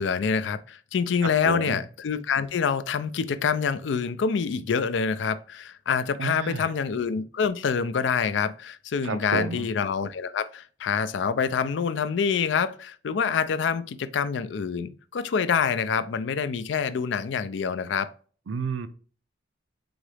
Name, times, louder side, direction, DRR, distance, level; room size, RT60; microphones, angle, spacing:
voice 1, 0.0-18.1, left 6 dB, 65° left, 0.4 m, -26 dB
voice 2, 1.4-1.8 6.2-6.6 9.0-9.7 18.5-18.9, right 4 dB, 85° right, 0.5 m, -30 dB
3.9 x 3.7 x 3.3 m
head